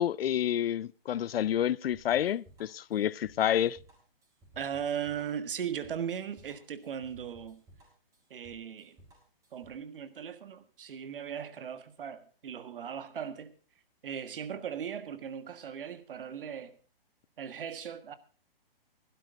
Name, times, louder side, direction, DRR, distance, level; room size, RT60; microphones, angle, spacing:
voice 1, 0.0-3.8, left 10 dB, 75° left, 0.5 m, -29 dB
sound 1, 1.9-9.8, right 1 dB, 10° right, 3.9 m, -59 dB
voice 2, 4.5-7.6 8.3-9.0 9.5-13.5 14.0-16.8 17.4-18.2, right 8 dB, 65° right, 1.6 m, -38 dB
16.0 x 12.0 x 3.9 m
hypercardioid pair, 155°, 30 cm